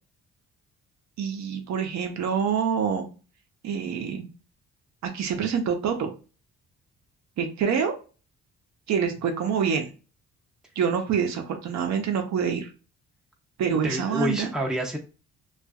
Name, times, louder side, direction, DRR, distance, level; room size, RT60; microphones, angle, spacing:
voice 1, 1.2-3.1 3.6-4.3 5.0-6.1 7.4-7.9 8.9-9.9 10.8-12.7 13.6-14.5, right 7 dB, 65° right, 5 dB, 0.7 m, -26 dB
voice 2, 13.7-15.0, equal, ahead, 1 dB, 0.5 m, -28 dB
2.6 x 2.4 x 2.3 m, 0.34 s
cardioid pair, 90°, 30 cm